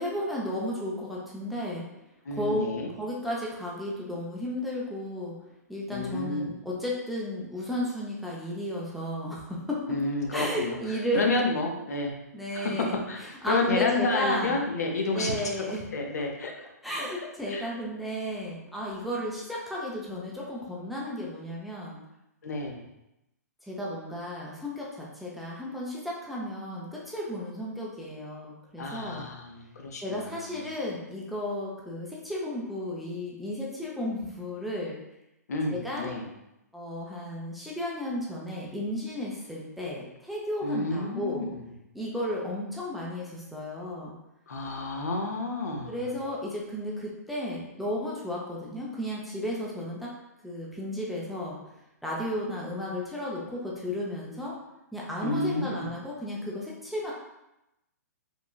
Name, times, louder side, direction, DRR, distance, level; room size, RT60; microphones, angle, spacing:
voice 1, 0.0-1.8 2.3-2.7 3.0-5.4 5.7-10.0 10.3-11.3 12.3-13.0 13.4-14.6 15.1-15.9 16.2-16.3 16.8-22.0 23.6-29.3 30.0-35.0 35.7-36.1 36.7-41.5 41.9-44.2 45.9-50.1 50.4-51.6 52.0-54.6 54.9-57.1, left 1 dB, ahead, -5 dB, 0.4 m, -33 dB
voice 2, 2.2-2.9 5.9-6.5 9.9-10.8 11.2-12.1 12.5-15.7 15.9-16.5 17.5-17.7 22.4-22.8 28.8-30.5 35.5-36.2 40.6-41.6 44.5-46.0 55.2-55.9, left 2 dB, 70° left, 2 dB, 0.5 m, -30 dB
3.0 x 2.2 x 2.2 m, 0.89 s
figure-of-eight pair, 120°, 9 cm